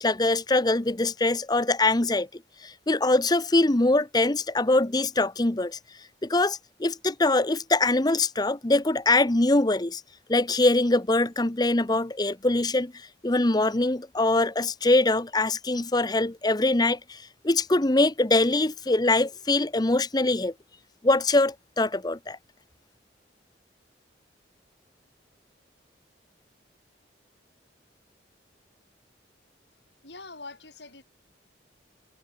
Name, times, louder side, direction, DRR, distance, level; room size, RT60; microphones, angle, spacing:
voice 1, 0.0-2.3 2.6-5.8 6.2-10.0 10.3-12.9 13.2-20.5 21.0-22.4, left 2 dB, 25° left, 0.9 m, -23 dB
voice 2, 30.0-31.0, left 3 dB, 75° left, 7.6 m, -43 dB
head